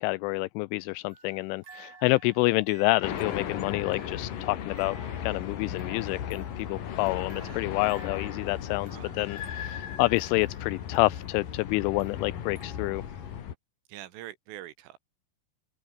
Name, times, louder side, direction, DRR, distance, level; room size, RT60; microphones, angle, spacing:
voice 1, 0.0-13.0, left 22 dB, 85° left, 3.0 m, -28 dB
sound 1, 1.1-13.4, right 5 dB, 40° right, 5.5 m, -54 dB
sound 2, 3.0-13.5, left 9 dB, 50° left, 3.3 m, -36 dB
voice 2, 7.4-7.8 8.9-9.3 13.9-15.0, right 14 dB, 85° right, 4.2 m, -45 dB
omnidirectional pair, 5.6 m